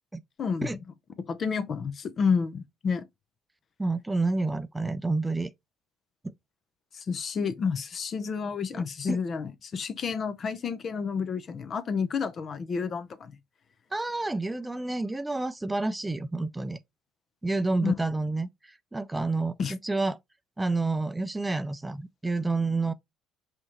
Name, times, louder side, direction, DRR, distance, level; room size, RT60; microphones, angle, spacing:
voice 1, 0.4-0.8 1.3-3.0 6.9-13.3 17.8-17.9 19.6-19.7, left 5 dB, 45° left, 0.6 m, -30 dB
voice 2, 3.8-5.5 6.2-6.3 8.7-9.2 13.9-16.8 17.4-20.2 20.6-22.9, right 3 dB, 15° right, 0.4 m, -29 dB
5.3 x 3.0 x 3.1 m
supercardioid pair, 75°, 0 cm